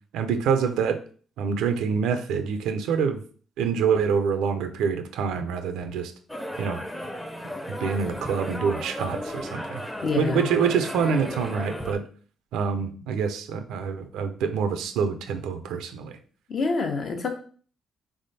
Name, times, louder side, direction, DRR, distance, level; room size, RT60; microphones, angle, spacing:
voice 1, 0.1-1.0 1.4-3.2 3.6-6.1 6.6-6.8 7.8-9.8 10.2-12.0 12.5-16.2, right 6 dB, 90° right, 8 dB, 0.6 m, -26 dB
sound 1, 6.3-11.9, equal, 10° left, 0.8 m, -35 dB
voice 2, 10.0-10.5 16.5-17.3, left 4 dB, 50° left, 3 dB, 1.0 m, -26 dB
3.5 x 3.5 x 4.1 m, 0.43 s
cardioid pair, 90°, 0 cm